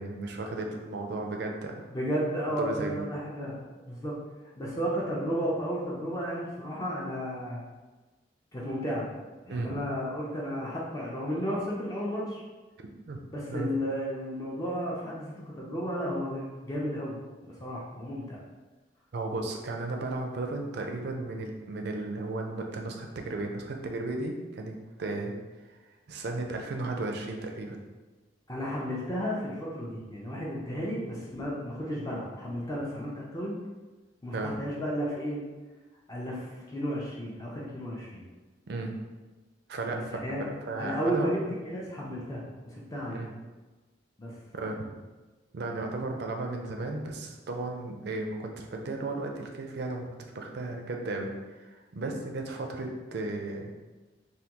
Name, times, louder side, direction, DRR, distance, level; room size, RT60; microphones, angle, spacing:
voice 1, 0.0-1.8 2.6-3.0 9.5-9.8 13.1-13.2 13.5-13.7 19.1-25.3 26.1-27.8 34.3-34.5 38.7-38.9 39.7-40.2 40.6-41.3 43.1-43.3 44.5-44.9 45.5-50.1 50.3-51.3 51.6-53.7, right 2 dB, 60° right, 2 dB, 0.4 m, -34 dB
voice 2, 1.9-4.1 4.6-7.6 8.5-9.1 9.4-12.4 13.3-17.2 17.4-18.4 28.5-33.6 34.2-35.4 36.1-38.2 39.9-40.5 40.8-43.2 44.2-44.3, equal, 20° left, -5 dB, 0.4 m, -33 dB
3.4 x 2.2 x 2.9 m, 1.2 s
head